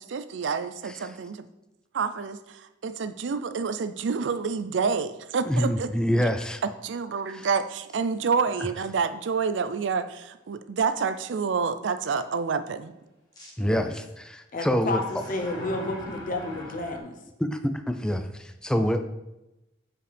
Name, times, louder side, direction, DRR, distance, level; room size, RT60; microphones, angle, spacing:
voice 1, 0.0-1.5 1.9-6.2 6.6-12.9, right 5 dB, 75° right, 12 dB, 0.4 m, -28 dB
voice 2, 5.5-6.6 7.3-7.5 13.6-15.0 17.4-19.1, equal, 5° left, 8 dB, 0.4 m, -26 dB
sound 1, 8.1-8.2 8.8-8.9 13.3-13.5 14.8-17.0, left 1 dB, 20° left, 1.6 m, -41 dB
voice 3, 13.6-13.9 14.5-17.2, left 2 dB, 45° left, 5 dB, 0.7 m, -31 dB
7.5 x 4.8 x 3.3 m, 0.95 s
head